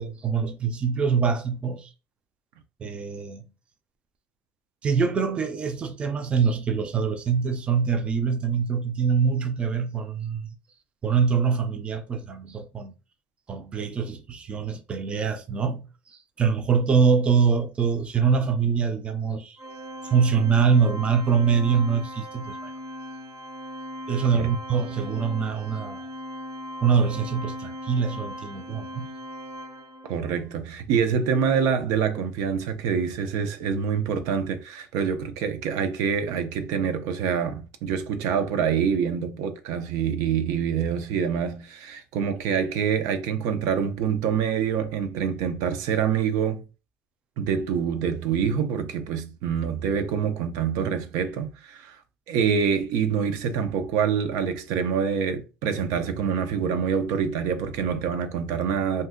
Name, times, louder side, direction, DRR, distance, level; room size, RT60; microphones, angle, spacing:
voice 1, 0.0-1.9 2.8-3.4 4.8-10.6 11.0-12.9 13.5-15.8 16.1-19.6 20.0-22.7 24.1-26.1 26.8-29.1, right 6 dB, 20° right, 0.4 m, -24 dB
Organ, 19.6-30.3, equal, 50° right, 0.7 m, -38 dB
voice 2, 30.1-46.6 47.4-52.0 52.3-59.1, right 7 dB, 80° right, 0.5 m, -26 dB
2.6 x 2.1 x 3.7 m
cardioid pair, 160°, 5 cm